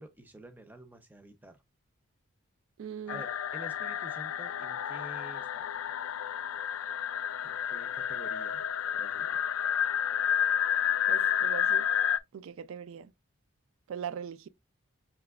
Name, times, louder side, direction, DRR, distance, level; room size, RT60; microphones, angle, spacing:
voice 1, 0.0-1.6 3.0-5.6 7.4-8.6 8.9-9.4, right 1 dB, 10° right, 0.5 m, -49 dB
voice 2, 2.8-3.2 11.1-11.9 12.3-13.1 13.9-14.5, right 8 dB, 75° right, 0.3 m, -40 dB
sound 1, 3.1-12.2, left 9 dB, 80° left, 0.3 m, -30 dB
5.9 x 2.9 x 2.3 m
head